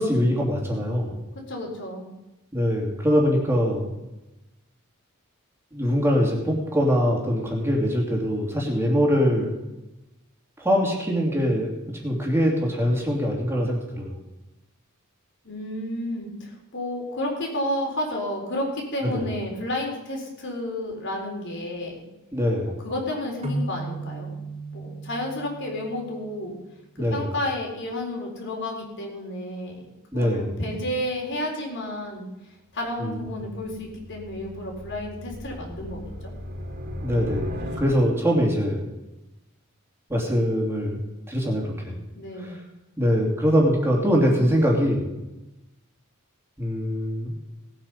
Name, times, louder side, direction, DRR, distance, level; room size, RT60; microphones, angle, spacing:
voice 1, 0.0-1.2 2.5-3.9 5.7-9.5 10.6-11.7 12.0-14.2 19.1-19.2 22.3-22.7 27.0-27.2 30.1-30.5 33.0-33.2 37.0-38.9 40.1-41.0 41.3-42.0 42.4-42.6 43.0-45.1 46.6-47.3, equal, 10° right, -2 dB, 2.8 m, -23 dB
voice 2, 1.3-2.1 15.4-22.0 22.8-24.4 24.7-26.6 27.1-29.8 30.1-32.3 32.7-36.3 42.1-42.6, left 1 dB, 55° left, 0 dB, 4.0 m, -31 dB
sound 1, 23.4-27.0, right 2 dB, 30° right, 2.0 m, -35 dB
sound 2, 33.3-38.4, left 1 dB, 55° right, 2.2 m, -37 dB
18.5 x 9.0 x 5.6 m, 0.99 s
head